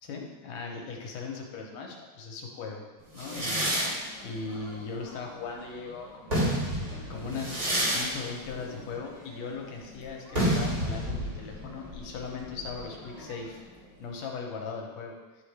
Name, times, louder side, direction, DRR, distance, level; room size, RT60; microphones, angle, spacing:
voice 1, 0.0-2.8 3.1-3.7 4.2-7.6 7.9-13.6 14.0-15.2, left 4 dB, 75° left, 0 dB, 2.0 m, -38 dB
sound 1, 3.2-5.6 6.1-13.6, equal, 35° right, 1.4 m, -31 dB
11.0 x 3.7 x 3.3 m, 1.3 s
omnidirectional pair, 3.3 m